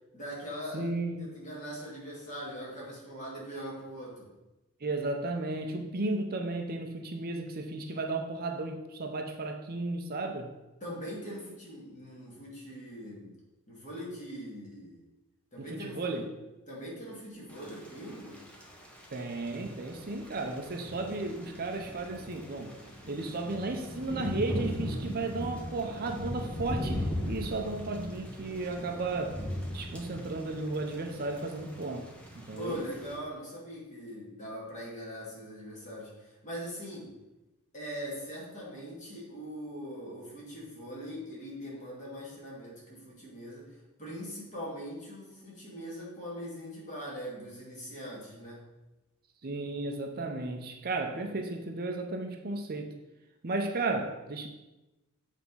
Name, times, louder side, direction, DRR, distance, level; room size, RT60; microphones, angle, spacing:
voice 1, 0.1-0.9 1.2-4.3 10.8-13.3 13.7-15.0 15.5-16.2 16.7-18.4 32.5-37.1 37.7-43.7 44.0-48.6, equal, 35° left, -5 dB, 2.5 m, -41 dB
voice 2, 0.7-1.3 4.8-10.5 15.6-16.3 19.1-22.8 23.1-29.4 29.7-32.1 32.3-32.8 49.4-52.9 53.4-54.5, right 2 dB, 45° right, 4 dB, 0.6 m, -34 dB
Thunder / Rain, 17.5-33.2, equal, 5° left, 1.0 m, -39 dB
7.9 x 3.6 x 5.5 m, 1.0 s
head